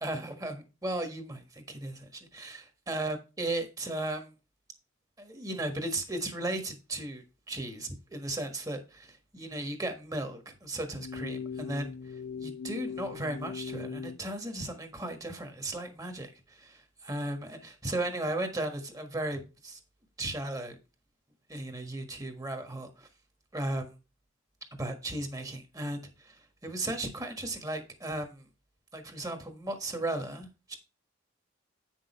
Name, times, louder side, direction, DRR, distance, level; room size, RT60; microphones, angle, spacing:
voice 1, 0.0-4.3 5.2-12.0 12.4-19.8 20.2-20.7 21.5-23.1 23.5-24.0 24.8-28.4 28.9-30.8, right 1 dB, 15° right, 1.4 m, -36 dB
sound 1, 10.9-14.2, left 6 dB, 55° left, 0.4 m, -39 dB
9.1 x 6.3 x 4.4 m
head